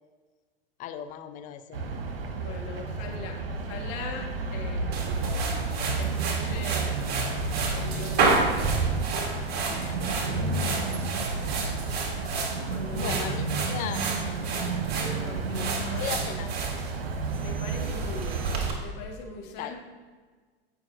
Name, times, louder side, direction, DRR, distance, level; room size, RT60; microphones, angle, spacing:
voice 1, 0.8-1.9 9.7-10.3 10.7-11.0 12.9-14.0 15.7-16.5 19.6-19.7, left 10 dB, 25° left, 9 dB, 0.5 m, -38 dB
sound 1, 1.7-18.8, right 3 dB, 65° right, 1.1 m, -32 dB
voice 2, 2.4-5.0 6.0-7.0 7.7-8.7 10.3-10.9 12.6-13.4 14.9-16.4 17.4-19.7, left 4 dB, 45° left, 2 dB, 1.7 m, -41 dB
sound 2, 4.9-18.7, right 4 dB, 35° right, 1.6 m, -31 dB
15.5 x 5.9 x 2.7 m, 1.5 s
figure-of-eight pair, 95°, 30 cm